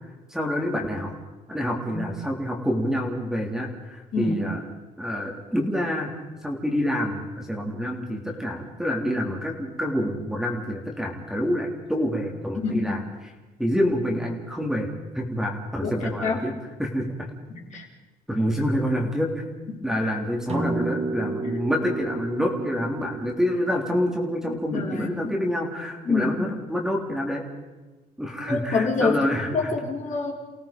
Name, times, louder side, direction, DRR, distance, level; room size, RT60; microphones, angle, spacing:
voice 1, 0.3-1.1 1.5-4.6 5.0-6.1 6.4-13.3 13.6-14.9 15.1-16.5 16.8-17.3 18.3-19.4 19.8-27.4 28.2-29.7, equal, 5° right, 0 dB, 3.4 m, -27 dB
voice 2, 12.6-13.0 15.8-16.4 17.5-17.9 19.7-19.8 24.5-25.3 26.1-26.3 28.5-29.2 29.5-30.3, left 4 dB, 45° left, -1 dB, 4.3 m, -27 dB
sound 1, 20.5-25.0, right 3 dB, 40° right, 1.5 m, -32 dB
29.5 x 17.5 x 5.3 m, 1.2 s
cardioid pair, 110°, 17 cm